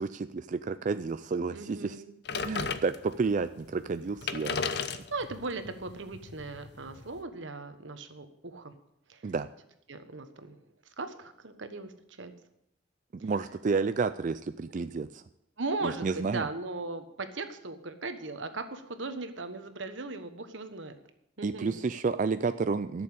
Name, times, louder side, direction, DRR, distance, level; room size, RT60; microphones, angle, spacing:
voice 1, 0.0-2.0 2.4-4.6 9.2-9.5 13.1-15.2 15.8-16.5 21.4-23.0, right 4 dB, 40° right, 11 dB, 0.4 m, -30 dB
voice 2, 1.5-2.8 5.1-8.7 9.1-9.3 9.9-10.6 11.0-12.3 13.2-13.3 15.6-20.9 21.4-21.9, right 3 dB, 85° right, 9 dB, 1.3 m, -38 dB
sound 1, 2.3-3.3 3.9-4.0 4.2-7.2, left 5 dB, 60° left, 0.8 m, -35 dB
12.0 x 6.9 x 8.6 m, 0.78 s
head